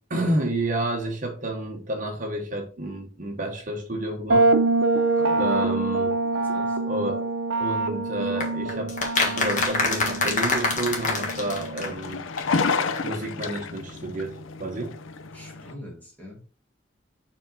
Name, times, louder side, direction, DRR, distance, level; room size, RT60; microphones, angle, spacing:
voice 1, 0.1-4.5 5.4-6.1 6.9-7.2 7.6-12.2 12.6-12.7 13.0-15.0, right 1 dB, 40° right, 1.0 m, -30 dB
sound 1, 4.3-11.9, right 2 dB, 80° right, 0.7 m, -25 dB
voice 2, 5.2-5.5 6.3-6.8 15.3-16.4, left 1 dB, 10° left, 2.2 m, -43 dB
sound 2, 8.4-12.1 12.4-12.5 12.7-12.8 13.0-13.1, left 3 dB, 40° left, 1.6 m, -26 dB
sound 3, 10.7-15.7, left 4 dB, 80° left, 0.6 m, -31 dB
7.1 x 3.8 x 4.2 m
head